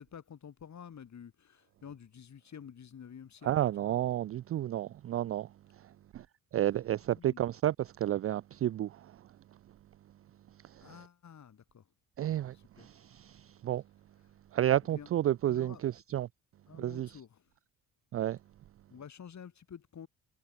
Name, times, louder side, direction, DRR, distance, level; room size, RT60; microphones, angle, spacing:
voice 1, 0.0-3.5 3.8-4.0 7.2-7.4 10.8-11.9 12.5-12.9 14.9-15.1 15.4-15.8 16.7-17.5 18.9-20.1, left 8 dB, 55° left, 7.1 m, -50 dB
voice 2, 3.4-5.5 5.8-5.9 6.1-6.3 6.5-9.2 10.6-11.0 12.2-13.8 14.5-16.3 16.7-17.2 18.1-18.4, right 12 dB, 40° right, 0.4 m, -31 dB
supercardioid pair, 70°, 35 cm